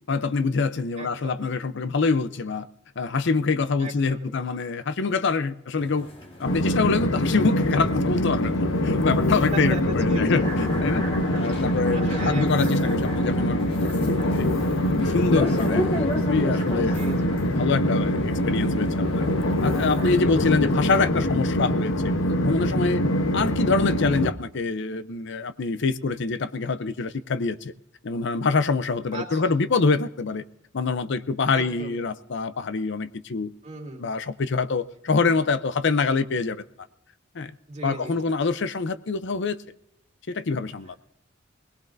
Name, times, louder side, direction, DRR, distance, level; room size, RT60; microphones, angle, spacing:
voice 1, 0.1-2.7 3.0-6.1 6.4-11.1 11.3-14.5 14.9-17.0 17.6-19.3 19.6-23.0 23.3-27.7 28.0-30.4 30.7-33.5 34.0-36.6 37.3-37.5 37.8-39.6 40.3-41.0, left 4 dB, 65° left, 13 dB, 0.6 m, -25 dB
voice 2, 1.0-1.5 3.8-4.3 9.5-10.5 11.3-12.9 16.9-17.4 20.5-20.6 29.1-29.5 31.5-32.0 33.6-34.1 37.7-38.3, right 2 dB, 35° right, -2 dB, 3.1 m, -38 dB
sound 1, 5.8-21.1, equal, 30° left, 1.6 m, -37 dB
Train, 6.4-24.3, left 1 dB, 90° left, 1.0 m, -24 dB
21.5 x 18.5 x 2.6 m, 0.79 s
head